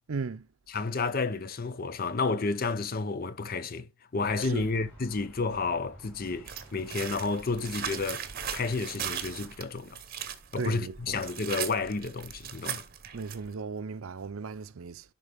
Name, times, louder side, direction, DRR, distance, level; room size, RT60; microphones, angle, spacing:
voice 1, 0.1-0.5 4.4-4.7 10.6-11.2 13.1-15.1, right 4 dB, 75° right, 0.5 m, -36 dB
voice 2, 0.7-8.3 8.5-10.0 10.5-12.8, left 4 dB, 40° left, 0.6 m, -31 dB
sound 1, 4.1-9.6, right 1 dB, 5° left, 5.3 m, -52 dB
sound 2, 6.5-13.5, right 9 dB, 45° right, 0.9 m, -38 dB
10.5 x 3.9 x 3.5 m
head